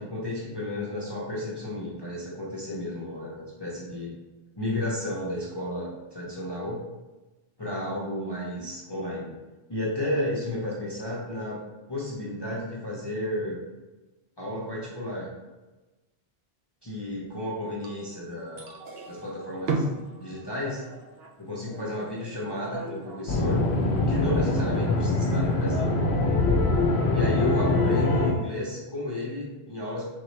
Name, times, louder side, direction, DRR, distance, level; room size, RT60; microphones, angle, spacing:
voice 1, 0.0-4.2 4.6-6.8 7.6-9.4 9.7-11.6 11.9-13.6 14.4-15.3 16.8-18.7 19.1-19.8 20.2-20.8 21.4-23.6 24.1-26.0 27.1-30.1, left 1 dB, 30° left, -5 dB, 0.6 m, -32 dB
sound 1, 17.8-25.9, right 2 dB, 70° right, 0.9 m, -37 dB
sound 2, 23.3-28.3, left 2 dB, 85° left, 0.9 m, -23 dB
4.0 x 3.6 x 3.2 m, 1.1 s
omnidirectional pair, 1.1 m